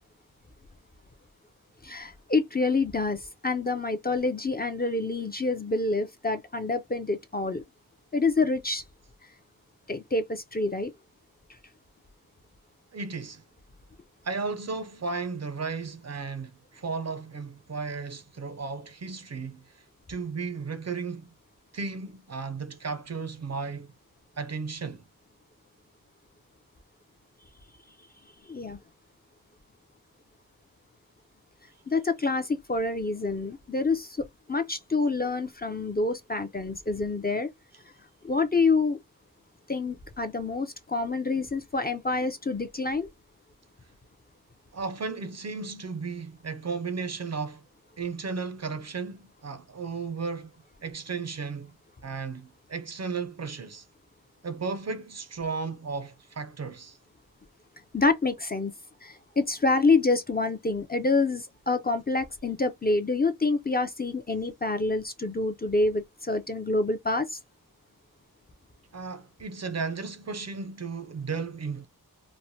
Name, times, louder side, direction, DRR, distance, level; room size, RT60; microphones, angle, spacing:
voice 1, 1.8-7.6 8.1-8.8 9.9-10.9 28.5-28.8 31.9-37.5 38.2-39.0 39.7-43.1 57.9-58.7 59.0-67.4, left 3 dB, 25° left, 0.4 m, -27 dB
voice 2, 12.9-13.4 14.2-21.3 21.7-23.9 24.4-25.0 44.7-47.6 48.0-50.6 50.8-51.7 52.0-53.9 54.4-57.0 68.9-71.9, right 4 dB, 45° right, 0.5 m, -34 dB
3.1 x 2.1 x 2.6 m
wide cardioid pair, 90°, 37 cm